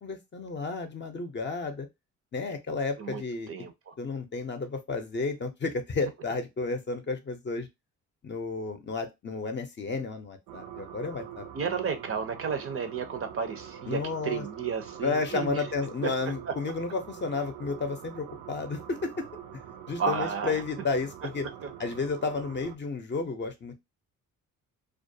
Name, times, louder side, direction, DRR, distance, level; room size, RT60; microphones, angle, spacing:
voice 1, 0.0-1.9 2.3-3.5 4.0-7.7 8.2-11.7 13.9-14.4 15.0-19.2 19.5-19.6 19.9-21.5 21.8-23.7, left 4 dB, 35° left, 0.6 m, -32 dB
voice 2, 3.5-3.9 11.5-15.6 16.0-16.1 20.0-20.6 21.6-21.7, right 6 dB, 40° right, 0.5 m, -32 dB
sound 1, 10.5-22.8, right 9 dB, 85° right, 0.5 m, -45 dB
2.4 x 2.2 x 2.6 m
cardioid pair, 80°, 34 cm